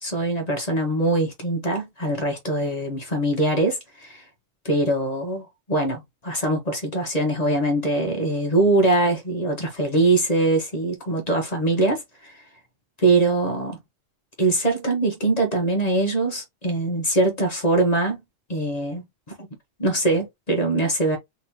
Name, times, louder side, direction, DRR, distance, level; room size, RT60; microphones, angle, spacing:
voice 1, 0.0-4.2 4.6-12.4 13.0-13.8 14.4-18.2 18.5-19.0 19.8-21.2, right 2 dB, 35° left, 1.2 m, -22 dB
3.6 x 3.6 x 2.9 m
omnidirectional pair, 1.3 m